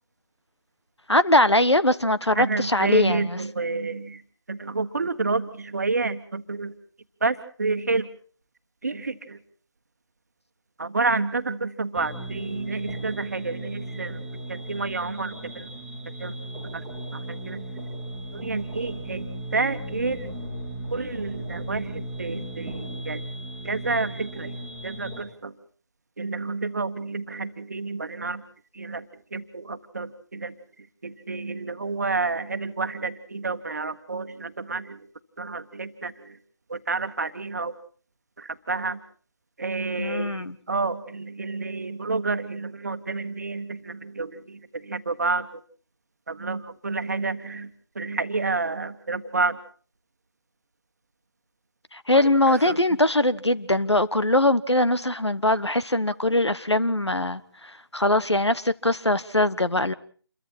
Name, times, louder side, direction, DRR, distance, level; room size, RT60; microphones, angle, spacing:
voice 1, 1.1-3.4 40.0-40.6 51.9-59.9, left 1 dB, 85° left, 14 dB, 1.3 m, -22 dB
voice 2, 2.3-4.2 4.5-6.7 7.2-8.1 8.8-9.4 10.8-14.2 14.5-15.7 16.2-16.4 16.7-16.8 17.1-17.8 18.3-20.4 20.9-23.2 23.6-25.5 26.2-28.4 28.7-29.1 29.3-30.5 31.0-35.1 35.4-36.4 36.7-37.7 38.4-39.0 39.6-45.6 46.3-49.6 52.1-52.8, right 3 dB, 40° right, 9 dB, 1.4 m, -29 dB
sound 1, 11.9-25.2, right 1 dB, 5° left, 2.0 m, -36 dB
28.0 x 23.0 x 4.4 m, 0.44 s
figure-of-eight pair, 160°, 14 cm